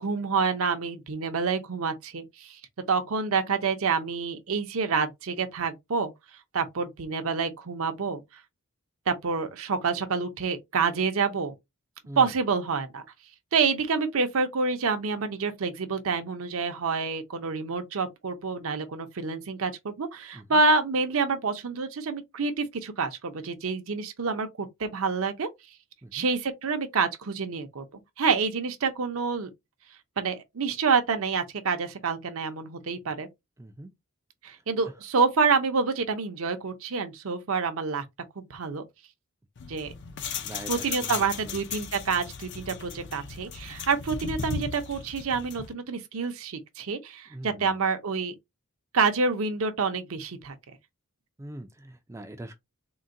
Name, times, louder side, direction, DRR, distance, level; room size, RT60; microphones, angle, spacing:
voice 1, 0.0-2.6 2.9-6.1 6.5-8.2 9.1-11.5 12.2-13.0 13.5-25.5 26.1-27.9 28.2-29.5 30.2-33.3 34.4-38.0 38.4-38.8 39.7-39.9 40.7-48.3 48.9-50.5, right 4 dB, 65° right, 0.6 m, -27 dB
voice 2, 33.6-33.9 40.4-41.6 47.3-47.7 51.4-52.5, right 1 dB, 15° right, 0.4 m, -42 dB
sound 1, 39.6-45.7, left 6 dB, 55° left, 0.5 m, -37 dB
3.8 x 2.2 x 2.5 m
head